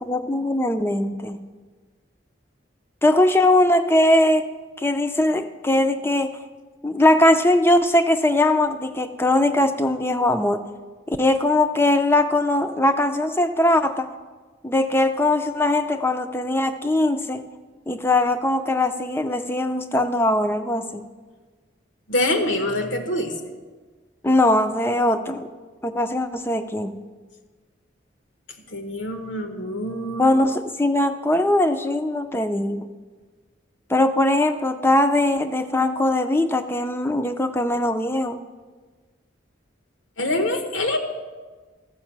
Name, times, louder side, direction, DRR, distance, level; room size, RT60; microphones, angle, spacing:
voice 1, 0.0-1.4 3.0-4.4 4.8-6.4 6.8-10.6 11.1-14.1 14.6-17.4 17.9-21.0 24.2-25.5 25.8-26.9 30.2-32.9 33.9-38.4, left 1 dB, 10° left, 9 dB, 0.4 m, -20 dB
voice 2, 22.1-23.5 28.7-30.3 40.2-41.0, left 1 dB, 75° left, 5 dB, 1.1 m, -25 dB
14.0 x 5.4 x 7.3 m, 1.4 s
head